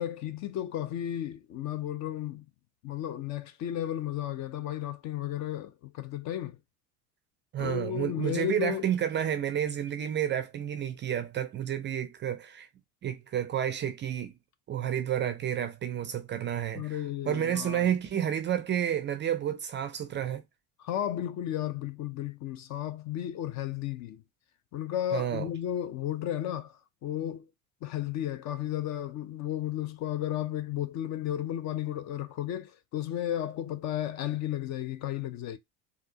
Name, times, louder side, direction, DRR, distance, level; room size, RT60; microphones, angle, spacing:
voice 1, 0.0-2.4 2.8-6.6 7.6-8.8 16.7-17.9 20.8-24.2 24.7-26.7 27.0-27.4 27.8-35.6, left 11 dB, 40° left, 0.5 m, -33 dB
voice 2, 7.5-12.7 13.0-14.3 14.7-20.4 25.1-25.5, right 10 dB, 25° right, 0.4 m, -30 dB
4.2 x 2.4 x 2.6 m
hypercardioid pair, 70°, 47 cm